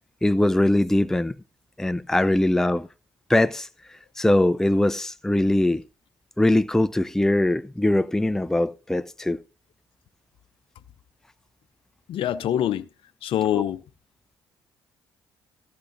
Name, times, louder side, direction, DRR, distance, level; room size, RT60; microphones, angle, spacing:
voice 1, 0.2-1.3 1.8-2.9 3.3-3.7 4.2-5.8 6.4-9.4 13.5-13.6, left 1 dB, 5° left, 0.5 m, -21 dB
voice 2, 12.1-12.9 13.2-13.8, left 11 dB, 60° left, 0.7 m, -24 dB
14.0 x 11.0 x 2.6 m
hypercardioid pair, 50°, 10 cm